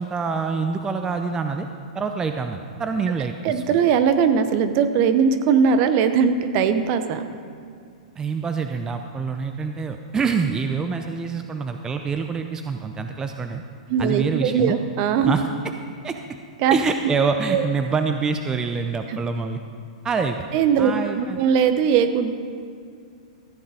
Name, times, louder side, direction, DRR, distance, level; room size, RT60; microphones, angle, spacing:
voice 1, 0.0-1.7 1.9-3.6 8.2-13.6 14.0-14.8 15.2-15.4 16.0-16.2 16.7-19.6 20.0-20.5 20.8-21.4, right 5 dB, 15° right, 6 dB, 0.5 m, -26 dB
voice 2, 3.4-7.3 13.9-15.3 16.6-16.8 17.5-17.7 19.1-19.2 20.5-22.3, right 7 dB, 45° right, 9 dB, 0.9 m, -20 dB
14.0 x 7.9 x 5.0 m, 2.3 s
hypercardioid pair, 110°, 4 cm